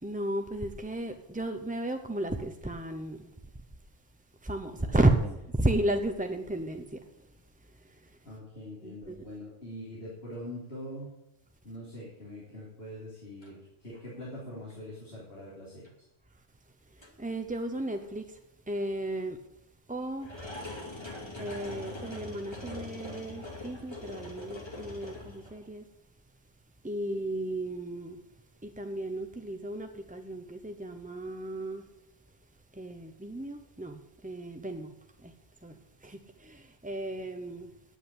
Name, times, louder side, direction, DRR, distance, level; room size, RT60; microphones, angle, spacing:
voice 1, 0.0-3.3 4.4-8.2 8.8-9.2 16.9-19.4 19.9-20.3 21.4-25.9 26.8-28.2 28.6-31.9 32.7-34.9 35.2-35.3 35.6-37.7, right 1 dB, 10° right, 0.4 m, -33 dB
voice 2, 8.2-11.1 11.6-15.8, left 1 dB, 55° left, 3.6 m, -43 dB
sound 1, 13.4-13.5 13.9-14.2 14.7-14.8 15.8-15.9 17.0-17.1 18.0-18.1 20.2-25.7, left 2 dB, 20° left, 2.2 m, -42 dB
9.8 x 8.1 x 8.7 m
omnidirectional pair, 1.3 m